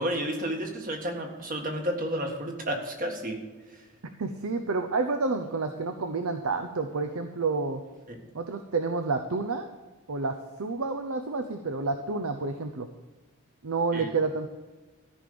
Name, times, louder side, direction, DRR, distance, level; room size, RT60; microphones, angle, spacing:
voice 1, 0.0-3.4 3.7-3.8 8.1-8.2 13.9-14.1, right 1 dB, 40° right, 2 dB, 1.7 m, -31 dB
voice 2, 4.2-7.8 8.3-9.7 10.1-12.9 13.6-14.5, right 3 dB, 70° right, 7 dB, 0.7 m, -29 dB
13.5 x 5.3 x 6.8 m, 1.3 s
head